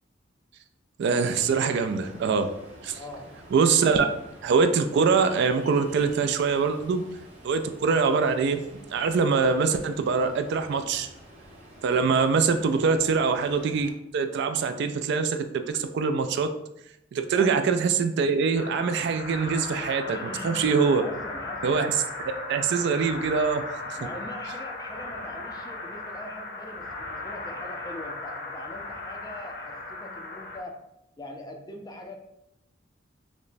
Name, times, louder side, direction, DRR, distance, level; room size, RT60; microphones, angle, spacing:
voice 1, 1.0-2.5 2.8-3.0 3.5-4.1 4.4-7.0 7.4-8.6 8.9-11.1 11.8-16.5 17.1-21.0 21.6-21.9 22.5-23.6 23.9-24.0, right 5 dB, 60° right, 8 dB, 0.3 m, -24 dB
Ocean, 1.2-13.9, right 1 dB, 35° right, 1.2 m, -49 dB
voice 2, 3.0-3.4 17.3-17.7 20.1-21.8 24.0-30.7 31.2-32.2, left 1 dB, 20° left, 3 dB, 0.4 m, -42 dB
sound 1, 18.5-30.6, left 2 dB, 50° left, 0.7 m, -37 dB
5.0 x 2.1 x 2.5 m, 0.82 s
head